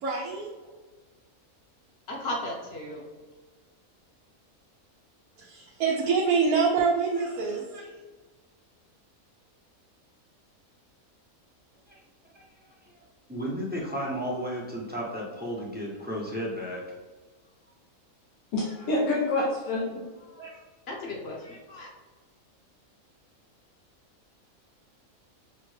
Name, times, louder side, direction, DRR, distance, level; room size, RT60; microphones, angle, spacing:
voice 1, 0.0-0.5 5.4-7.9 20.4-20.5, right 5 dB, 80° right, -2 dB, 1.1 m, -26 dB
voice 2, 2.1-3.1 20.9-21.9, left 1 dB, 50° left, -1 dB, 0.9 m, -35 dB
voice 3, 13.3-16.8, equal, 15° right, -4 dB, 0.4 m, -33 dB
voice 4, 18.5-20.5, left 2 dB, 90° left, -5 dB, 1.2 m, -28 dB
5.7 x 2.1 x 3.1 m, 1.3 s
omnidirectional pair, 1.5 m